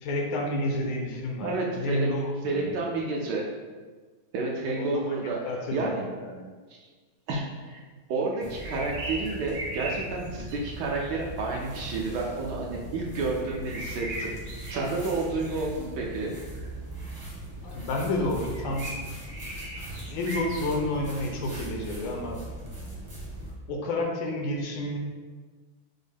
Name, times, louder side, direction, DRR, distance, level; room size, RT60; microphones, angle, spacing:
voice 1, 0.0-2.8 4.8-6.5 17.6-18.9 19.9-22.4 23.7-25.0, left 1 dB, 80° left, 1 dB, 1.3 m, -30 dB
voice 2, 1.4-2.1 2.4-3.5 4.3-5.4 5.7-6.1 6.7-6.9 7.3-7.8 8.1-14.3 14.7-16.7, right 3 dB, 70° right, -1 dB, 1.1 m, -30 dB
sound 1, 8.3-11.3 13.4-15.4 18.5-20.7, right 1 dB, 90° right, 0.5 m, -38 dB
sound 2, 8.4-23.5, right 1 dB, 20° right, 0.6 m, -40 dB
6.2 x 2.1 x 3.4 m, 1.4 s
omnidirectional pair, 2.1 m